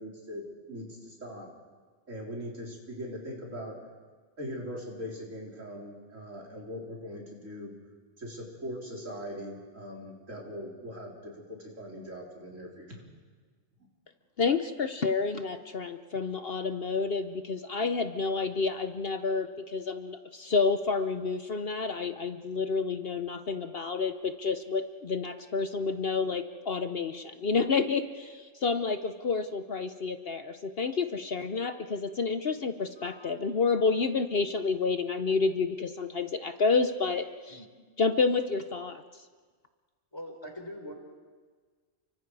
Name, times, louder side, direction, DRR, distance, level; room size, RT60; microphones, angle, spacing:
voice 1, 0.0-1.5 2.1-3.8 4.4-7.7 8.2-13.0, equal, 85° right, -2 dB, 4.5 m, -41 dB
voice 2, 14.4-37.6 38.0-39.0, left 4 dB, 55° left, 8 dB, 1.0 m, -29 dB
voice 3, 40.1-40.9, equal, 20° left, 2 dB, 4.0 m, -42 dB
30.0 x 24.0 x 4.8 m, 1.5 s
omnidirectional pair, 1.3 m